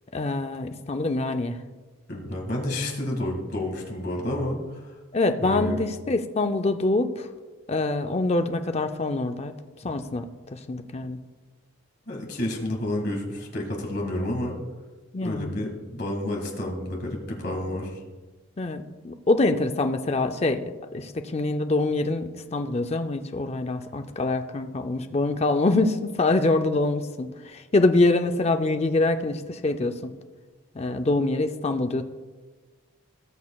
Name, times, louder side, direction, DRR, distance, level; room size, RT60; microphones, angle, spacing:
voice 1, 0.1-1.6 5.1-7.3 7.7-9.5 9.8-10.3 10.5-11.2 15.1-15.5 18.6-20.6 20.9-30.1 30.8-32.0, left 2 dB, 30° left, 7 dB, 0.5 m, -25 dB
voice 2, 2.1-4.9 5.4-5.8 9.8-9.9 12.1-14.6 15.2-18.0, left 1 dB, 50° left, 0 dB, 2.0 m, -30 dB
19.0 x 6.4 x 2.3 m, 1.3 s
head